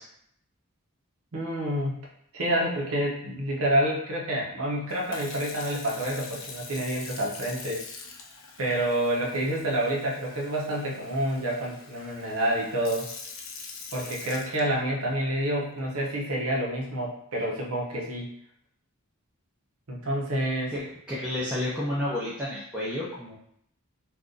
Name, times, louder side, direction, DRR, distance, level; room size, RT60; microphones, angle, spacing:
voice 1, 1.3-2.1 2.3-7.8 8.6-13.1 13.9-18.3 19.9-20.7, right 1 dB, 70° right, -2 dB, 0.8 m, -28 dB
Sink (filling or washing) / Fill (with liquid), 4.9-15.1 15.8-16.1, left 5 dB, 65° left, 0.5 m, -44 dB
voice 2, 21.1-23.4, left 1 dB, 5° right, -8 dB, 0.6 m, -30 dB
2.6 x 2.5 x 3.7 m, 0.71 s
head